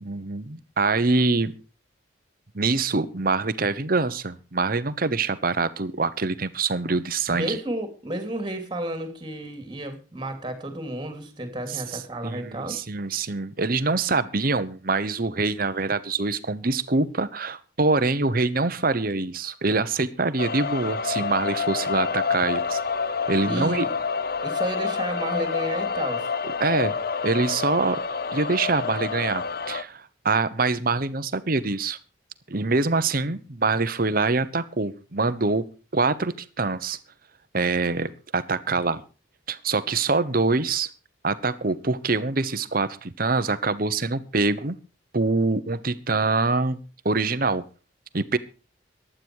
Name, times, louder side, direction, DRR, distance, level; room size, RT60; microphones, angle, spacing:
voice 1, 0.0-1.5 2.5-7.6 11.7-11.8 12.2-22.8 23.3-23.8 26.6-26.9 27.2-28.0 28.3-32.0 32.5-35.6 35.9-37.0 37.5-39.0 39.5-40.9 41.2-44.7 45.1-46.8 47.0-47.6 48.1-48.4, right 3 dB, 50° right, 1.0 m, -24 dB
voice 2, 7.3-12.8 23.4-24.0 24.4-26.3, right 1 dB, 25° right, 2.9 m, -32 dB
sound 1, 20.4-29.8, left 5 dB, 50° left, 0.6 m, -28 dB
15.5 x 11.5 x 4.7 m
head